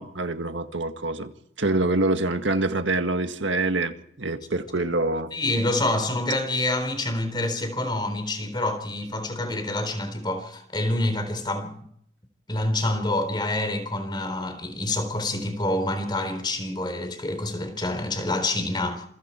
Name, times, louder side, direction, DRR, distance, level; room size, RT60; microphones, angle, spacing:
voice 1, 0.0-1.3 1.6-3.9 4.2-5.3, right 2 dB, 75° right, 1.8 m, -25 dB
voice 2, 5.3-11.9 12.5-19.0, left 2 dB, 25° left, 3.9 m, -27 dB
27.5 x 23.0 x 4.5 m
head